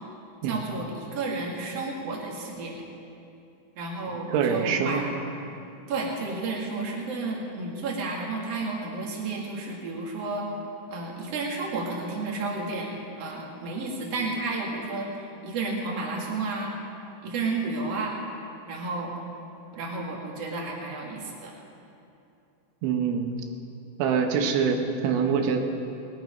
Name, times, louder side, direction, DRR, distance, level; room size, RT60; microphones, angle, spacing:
voice 1, 0.5-2.8 3.8-5.0 5.9-10.5 10.9-16.8 17.2-18.1 18.7-19.1 19.7-21.5, right 3 dB, 45° right, -2 dB, 2.3 m, -32 dB
voice 2, 4.3-5.0 22.8-23.4 24.0-25.6, right 6 dB, 80° right, 4 dB, 3.5 m, -25 dB
20.0 x 11.5 x 5.2 m, 2.7 s
omnidirectional pair, 5.4 m